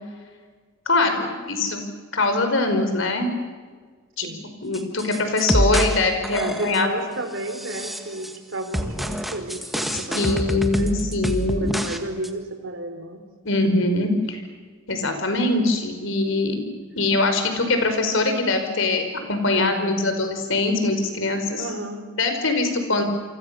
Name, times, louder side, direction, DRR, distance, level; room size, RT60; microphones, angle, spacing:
voice 1, 0.8-1.8 2.1-3.3 4.2-4.3 4.6-6.9 10.1-11.8 13.4-14.4 14.9-16.6 16.9-21.7 22.2-23.0, left 2 dB, 60° left, 6 dB, 5.1 m, -22 dB
sound 1, 4.7-6.0 6.2-6.9 7.5-8.4 8.7-12.0 12.2-12.3, equal, ahead, 1.7 m, -26 dB
voice 2, 6.3-11.1 11.6-13.2 16.9-17.1 19.5-20.0 21.6-22.1, right 2 dB, 60° right, 7 dB, 3.8 m, -32 dB
29.5 x 24.5 x 6.9 m, 1.5 s
head